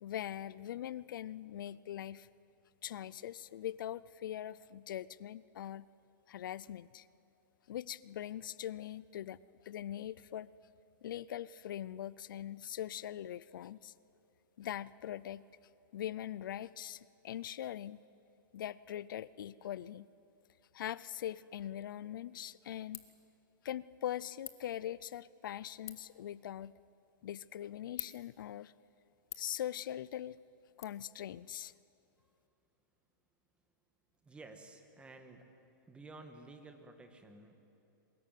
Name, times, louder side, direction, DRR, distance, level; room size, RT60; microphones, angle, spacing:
voice 1, 0.0-2.3 2.8-5.9 6.3-7.1 7.7-9.4 9.6-10.5 11.0-13.9 14.6-15.4 15.9-18.0 18.5-20.1 20.7-23.0 23.6-26.7 27.2-28.7 29.4-30.4 30.8-31.7, left 11 dB, 75° left, 20 dB, 0.5 m, -42 dB
Ratchet pawl, 21.8-30.8, left 12 dB, 25° left, 1.3 m, -53 dB
voice 2, 34.2-35.5 35.9-37.6, right 2 dB, 10° right, 6 dB, 1.8 m, -53 dB
23.0 x 21.0 x 9.3 m, 2.8 s
hypercardioid pair, 150°, 11 cm